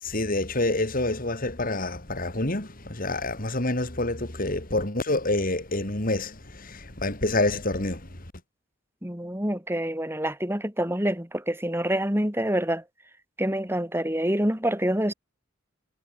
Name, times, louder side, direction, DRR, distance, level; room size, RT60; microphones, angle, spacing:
voice 1, 0.0-8.2, left 2 dB, 45° left, 3.1 m, -27 dB
voice 2, 9.0-12.8 13.4-15.1, right 1 dB, 10° right, 5.9 m, -26 dB
head